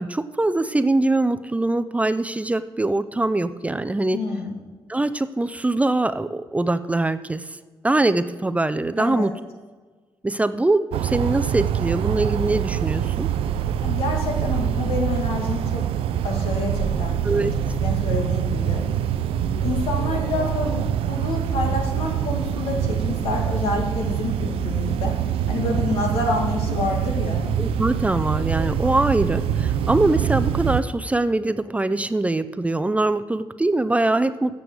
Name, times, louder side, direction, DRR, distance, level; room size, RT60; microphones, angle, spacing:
voice 1, 0.0-4.2 4.9-7.6 7.8-9.3 10.2-13.3 17.2-17.5 27.6-34.6, right 2 dB, 15° right, 11 dB, 0.4 m, -23 dB
voice 2, 4.1-4.5 9.0-9.3 13.8-15.9 16.2-17.5 17.8-18.8 19.6-25.1 25.5-27.5, left 3 dB, 90° left, 1 dB, 1.9 m, -28 dB
sound 1, 10.9-30.8, right 10 dB, 90° right, 0.4 m, -25 dB
sound 2, 16.1-31.0, left 3 dB, 20° left, 2.0 m, -36 dB
7.9 x 6.9 x 7.7 m, 1.4 s
cardioid pair, 75°, 9 cm